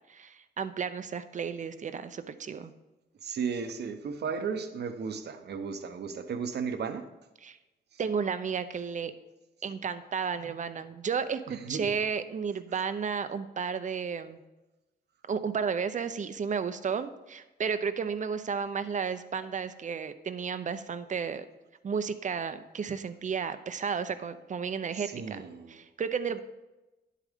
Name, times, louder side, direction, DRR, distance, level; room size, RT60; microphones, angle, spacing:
voice 1, 0.1-2.7 7.4-7.6 8.0-9.1 9.6-14.4 15.3-21.5 21.8-25.4 25.7-26.4, right 6 dB, 40° right, 11 dB, 0.6 m, -33 dB
voice 2, 3.2-7.0 7.9-8.0 11.5-12.0 24.9-25.8, right 6 dB, 65° right, 8 dB, 1.0 m, -35 dB
10.5 x 8.4 x 3.6 m, 1.0 s
cardioid pair, 115°, 19 cm